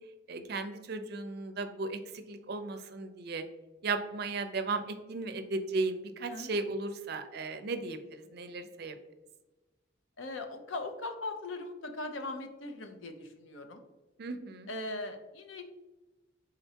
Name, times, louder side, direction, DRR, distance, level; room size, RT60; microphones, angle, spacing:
voice 1, 0.3-2.0 2.3-3.4 3.8-9.0 14.2-14.7, right 3 dB, 55° right, 8 dB, 0.4 m, -35 dB
voice 2, 10.2-13.8 14.7-15.6, left 2 dB, 75° left, 6 dB, 0.6 m, -39 dB
4.4 x 3.8 x 2.8 m, 1.1 s
head